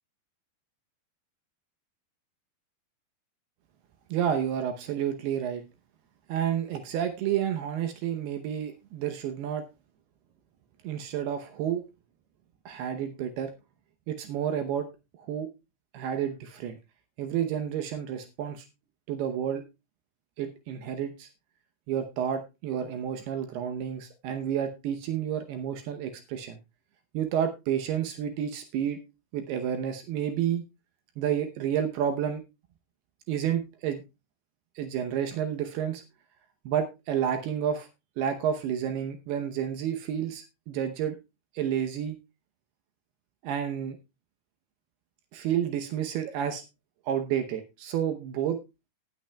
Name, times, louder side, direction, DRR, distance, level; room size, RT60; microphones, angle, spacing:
voice 1, 4.1-5.6 6.3-9.6 10.8-11.8 12.7-13.5 14.1-14.9 15.2-15.5 15.9-16.8 17.2-18.7 19.1-19.6 20.4-21.3 21.9-26.6 27.1-29.0 29.3-30.6 31.2-32.4 33.3-34.0 34.8-36.0 36.7-37.9 38.2-41.2 41.5-42.2 43.4-44.0 45.3-46.6 47.1-48.6, right 9 dB, 80° right, 7 dB, 2.3 m, -30 dB
18.5 x 9.2 x 2.2 m, 0.25 s
omnidirectional pair, 5.7 m